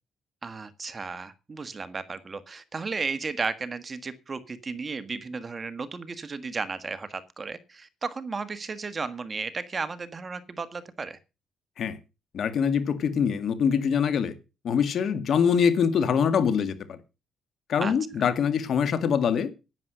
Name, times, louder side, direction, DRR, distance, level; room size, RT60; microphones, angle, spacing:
voice 1, 0.4-11.2 17.8-17.9, right 4 dB, 30° right, 1.4 m, -34 dB
voice 2, 12.3-14.3 14.6-17.0 17.7-19.6, left 7 dB, 60° left, 1.9 m, -24 dB
11.0 x 9.6 x 6.6 m
cardioid pair, 110°, 0 cm